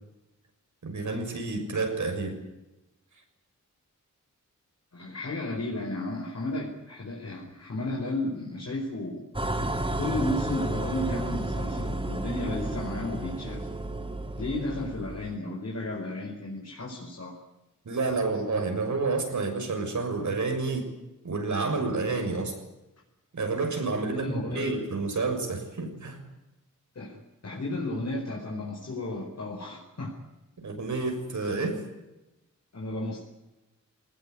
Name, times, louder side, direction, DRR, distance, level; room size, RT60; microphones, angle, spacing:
voice 1, 0.8-2.4 17.8-20.9 21.2-22.5 23.3-26.2 30.6-31.8, right 3 dB, 65° right, 5 dB, 6.6 m, -29 dB
voice 2, 4.9-9.2 10.0-13.7 14.4-17.4 24.1-24.7 26.9-27.2 27.4-30.1 32.7-33.2, left 2 dB, 55° left, -1 dB, 5.0 m, -33 dB
sound 1, 9.3-15.4, right 1 dB, 15° right, 2.3 m, -32 dB
22.5 x 19.5 x 9.8 m, 0.98 s
wide cardioid pair, 140°, 31 cm